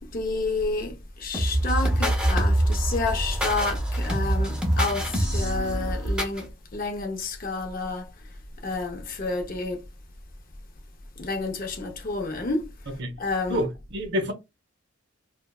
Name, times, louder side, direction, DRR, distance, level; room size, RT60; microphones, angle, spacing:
voice 1, 0.1-8.1 8.6-9.8 11.2-12.7 13.2-13.6, left 3 dB, 45° left, 0.6 m, -30 dB
sound 1, 1.3-6.4, right 1 dB, 5° right, 0.6 m, -25 dB
voice 2, 13.5-14.3, equal, 55° right, 0.6 m, -27 dB
3.1 x 2.1 x 2.3 m
head